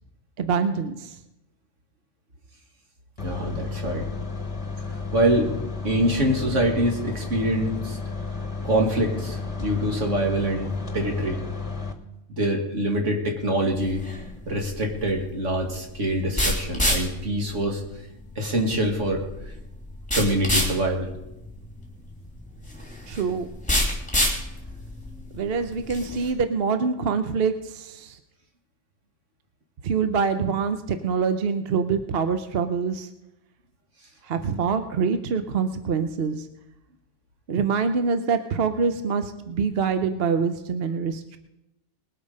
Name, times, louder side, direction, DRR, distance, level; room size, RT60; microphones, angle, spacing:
voice 1, 0.4-1.2 23.1-23.5 25.3-28.2 29.8-33.1 34.2-36.5 37.5-41.4, right 5 dB, 55° right, 9 dB, 0.9 m, -25 dB
sound 1, 3.2-11.9, left 4 dB, 30° left, 1.3 m, -32 dB
voice 2, 3.2-4.1 5.1-5.5 5.8-8.0 8.6-11.4 12.4-14.0 14.5-17.8 18.4-19.5 20.1-21.1, right 1 dB, 75° right, 2 dB, 2.4 m, -25 dB
sound 2, 13.7-26.3, left 1 dB, 5° left, 3.0 m, -29 dB
20.0 x 8.4 x 5.4 m, 0.91 s
omnidirectional pair, 1.3 m